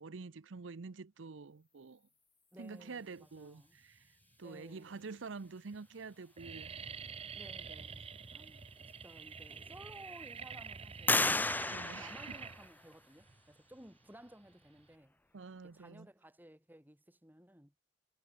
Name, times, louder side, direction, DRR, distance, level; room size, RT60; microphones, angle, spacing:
voice 1, 0.0-2.0 2.6-6.7 11.7-12.4 15.3-16.1, right 4 dB, 75° right, 0.7 m, -47 dB
voice 2, 2.5-3.8 4.4-5.1 7.3-8.6 9.0-11.5 12.0-15.2 15.6-17.7, right 1 dB, 10° right, 7.9 m, -56 dB
sound 1, 3.8-4.3 5.0-5.1 5.4-5.8 6.0-15.0, right 6 dB, 30° right, 0.8 m, -48 dB
sound 2, 8.8-8.9 9.5-10.1 11.1-13.0, left 2 dB, 10° left, 0.6 m, -34 dB
head